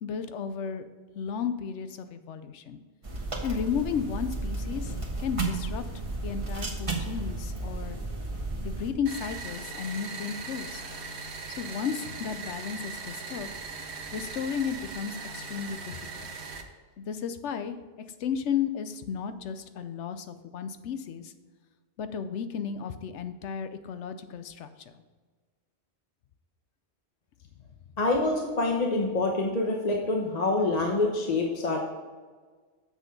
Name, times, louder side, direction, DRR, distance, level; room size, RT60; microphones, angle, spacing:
voice 1, 0.0-0.9 1.1-2.8 3.4-4.9 5.2-5.8 6.2-8.0 8.6-10.8 11.6-13.5 14.1-16.3 17.0-17.8 18.2-21.3 22.0-24.7, left 7 dB, 85° left, 10 dB, 1.0 m, -33 dB
sound 1, 3.0-8.9, right 2 dB, 30° right, 1.3 m, -33 dB
sound 2, 9.1-16.6, right 4 dB, 70° right, 1.2 m, -39 dB
voice 2, 28.0-31.8, left 2 dB, 40° left, 0 dB, 1.0 m, -26 dB
7.6 x 6.4 x 5.2 m, 1.4 s
omnidirectional pair, 1.2 m